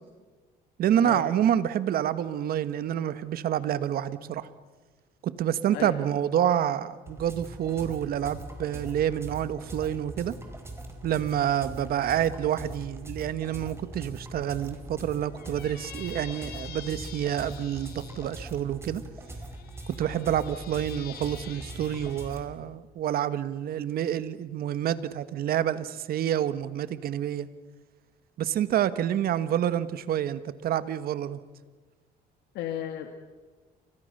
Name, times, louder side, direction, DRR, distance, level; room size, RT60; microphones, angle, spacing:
voice 1, 0.8-4.5 5.2-10.3 11.0-19.0 20.0-27.5 28.4-31.4, right 10 dB, 60° right, 14 dB, 1.4 m, -28 dB
sound 1, 7.1-22.4, right 1 dB, 15° right, 5.0 m, -42 dB
Squeak, 15.4-18.4 19.3-22.3, left 8 dB, 65° left, 3.7 m, -46 dB
voice 2, 32.5-33.1, left 10 dB, 85° left, 6 dB, 2.0 m, -34 dB
30.0 x 24.5 x 6.7 m, 1.3 s
cardioid pair, 110°, 17 cm